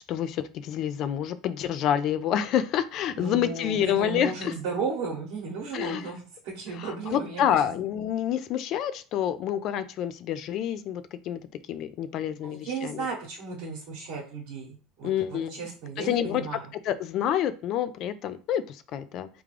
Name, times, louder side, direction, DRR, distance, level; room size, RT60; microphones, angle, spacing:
voice 1, 0.1-4.5 5.7-6.1 6.8-11.4 11.7-13.1 15.0-15.6 16.0-16.5 16.8-19.3, left 10 dB, 55° left, 13 dB, 0.3 m, -28 dB
voice 2, 3.1-7.8 12.4-16.6, right 4 dB, 70° right, -4 dB, 1.0 m, -35 dB
3.6 x 2.3 x 3.2 m, 0.36 s
supercardioid pair, 95°, 0 cm